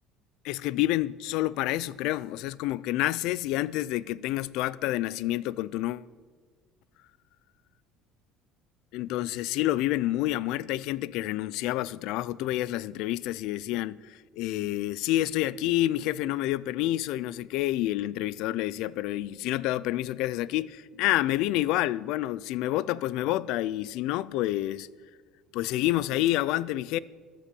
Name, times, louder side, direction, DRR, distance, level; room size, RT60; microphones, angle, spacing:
voice 1, 0.4-6.0 8.9-24.9 25.5-27.0, left 15 dB, 70° left, 0.4 m, -28 dB
14.0 x 11.5 x 6.9 m
cardioid pair, 155°, 0 cm